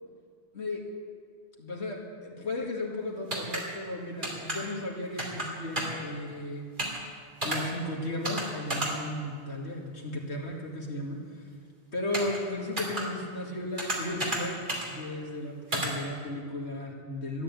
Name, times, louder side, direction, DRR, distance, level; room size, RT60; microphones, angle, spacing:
voice 1, 1.6-6.7 7.4-11.2 11.9-17.4, left 1 dB, 90° left, -1 dB, 2.4 m, -35 dB
sound 1, 3.3-3.6 4.2-4.6 5.2-5.5 5.7-6.0 6.8-7.0 7.4-7.6 8.2-8.4 8.7-8.9 12.1-12.4 12.8-13.0 13.8-14.4 14.7-14.9 15.7-15.9, right 1 dB, 50° right, 2.9 m, -30 dB
13.0 x 10.5 x 8.4 m, 2.2 s
omnidirectional pair, 1.1 m